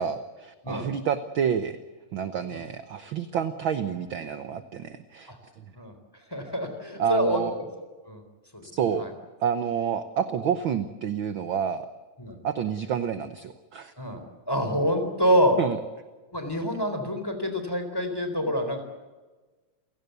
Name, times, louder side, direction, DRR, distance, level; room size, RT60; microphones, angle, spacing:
voice 1, 0.0-1.8 2.1-5.3 7.0-7.5 8.6-9.1 9.4-11.9 12.4-13.9 15.6-15.8, right 8 dB, 60° right, 10 dB, 1.3 m, -28 dB
voice 2, 6.3-7.6 8.1-8.2 8.5-8.6 9.0-9.1 12.2-12.4 14.0-15.6 16.3-18.8, equal, 5° left, 6 dB, 3.6 m, -26 dB
29.5 x 18.0 x 8.1 m, 1.3 s
omnidirectional pair, 3.4 m